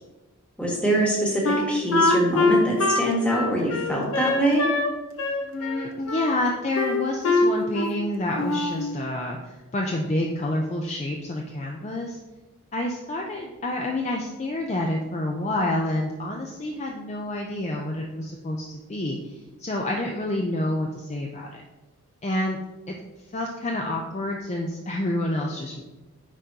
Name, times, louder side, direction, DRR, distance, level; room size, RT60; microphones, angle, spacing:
voice 1, 0.6-4.7, right 1 dB, 5° left, -3 dB, 1.2 m, -24 dB
Wind instrument woodwind instrument, 1.4-4.9 5.2-6.3 6.8-8.0 8.4-8.8, left 2 dB, 70° left, 0.7 m, -23 dB
voice 2, 5.4-12.2 12.7-19.3 19.6-21.6 22.2-22.6 22.9-23.0 23.3-25.8, left 1 dB, 30° left, 0 dB, 0.4 m, -28 dB
9.8 x 3.8 x 2.8 m, 1.1 s
head